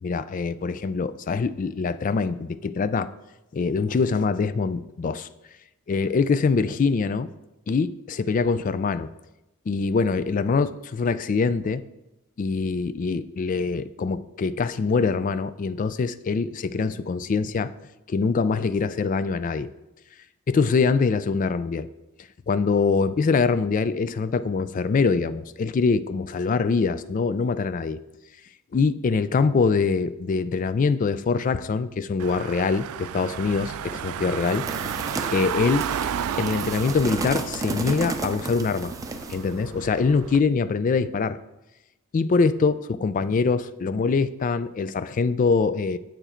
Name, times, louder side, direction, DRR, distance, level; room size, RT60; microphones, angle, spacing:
voice 1, 0.0-3.1 3.5-5.3 5.9-7.3 7.7-9.1 9.7-11.8 12.4-17.7 18.1-19.7 20.5-21.9 22.5-28.0 28.7-34.6 35.3-35.9 36.4-38.9 39.3-41.4 42.1-46.0, left 4 dB, 35° left, 14 dB, 0.3 m, -24 dB
Car / Engine, 32.2-40.4, right 9 dB, 85° right, 0.3 m, -33 dB
sound 1, 34.4-39.5, right 2 dB, 15° right, 0.5 m, -33 dB
7.8 x 7.0 x 4.3 m, 0.97 s
head